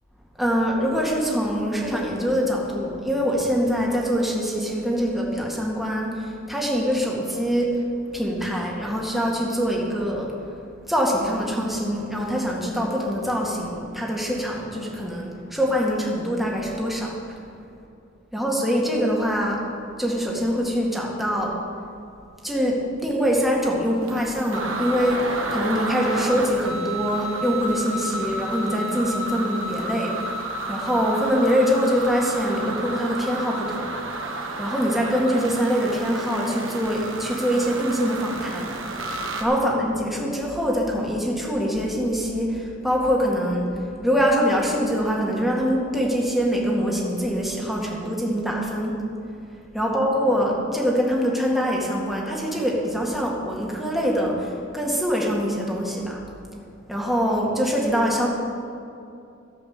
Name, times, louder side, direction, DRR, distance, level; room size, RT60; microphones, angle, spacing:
voice 1, 0.4-7.8 8.1-10.3 10.9-17.2 18.3-19.6 20.0-21.6 22.4-30.4 30.7-33.9 34.6-38.8 39.4-43.7 44.0-48.9 49.7-56.2 56.9-58.3, equal, ahead, -3 dB, 1.8 m, -24 dB
sound 1, 23.7-23.8 24.0-39.4, right 2 dB, 75° right, 1.3 m, -31 dB
13.0 x 7.8 x 6.5 m, 2.6 s
head